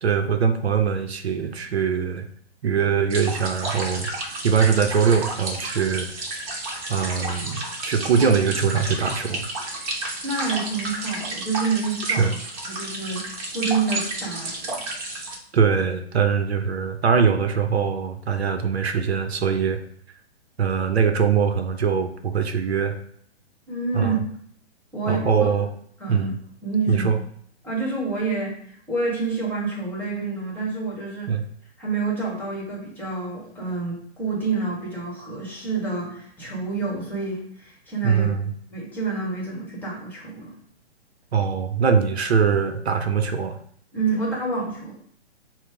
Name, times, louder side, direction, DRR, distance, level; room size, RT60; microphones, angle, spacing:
voice 1, 0.0-2.3 2.6-4.1 4.4-6.1 6.9-9.4 12.1-12.3 15.5-19.8 20.6-23.0 23.9-24.2 25.1-25.7 26.1-26.4 26.9-27.2 31.3-31.4 38.0-38.5 41.3-43.6, right 6 dB, 75° right, 7 dB, 0.6 m, -22 dB
sound 1, 3.1-15.4, right 2 dB, 35° right, 1.0 m, -32 dB
voice 2, 10.2-12.2 12.6-14.8 23.7-24.2 24.9-25.5 26.0-26.3 26.6-27.1 27.6-31.3 31.8-38.3 38.7-40.5 43.9-44.9, right 4 dB, 5° left, -5 dB, 1.1 m, -28 dB
4.3 x 2.0 x 4.5 m, 0.63 s
figure-of-eight pair, 125°, 33 cm